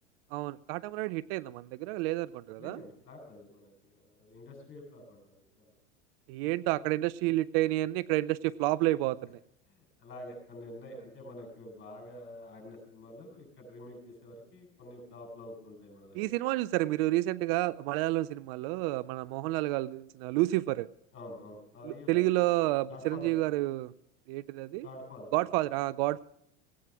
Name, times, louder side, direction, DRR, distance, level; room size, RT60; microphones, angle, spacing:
voice 1, 0.3-2.8 6.3-9.4 16.2-20.9 21.9-23.9 24.3-24.9 25.3-26.2, right 17 dB, 55° right, 20 dB, 0.5 m, -30 dB
voice 2, 2.6-5.7 9.7-16.4 21.1-22.3 22.9-23.3 24.8-25.5, left 1 dB, 35° left, 3 dB, 7.2 m, -48 dB
18.0 x 9.0 x 6.0 m, 0.72 s
hypercardioid pair, 95°, 36 cm